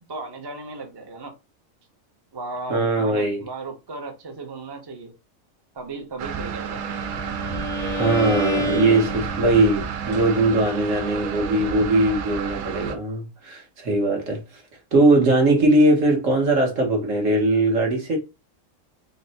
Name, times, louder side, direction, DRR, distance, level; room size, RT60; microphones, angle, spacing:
voice 1, 0.1-1.3 2.3-5.1 5.7-6.8, right 3 dB, 30° right, 0.4 m, -35 dB
voice 2, 2.7-3.4 8.0-14.4 14.9-18.2, right 2 dB, 65° right, 1.5 m, -20 dB
sound 1, 6.2-12.9, right 7 dB, 90° right, 1.1 m, -30 dB
Bowed string instrument, 6.6-9.7, left 1 dB, 30° left, 0.5 m, -30 dB
4.0 x 2.2 x 4.0 m
omnidirectional pair, 1.4 m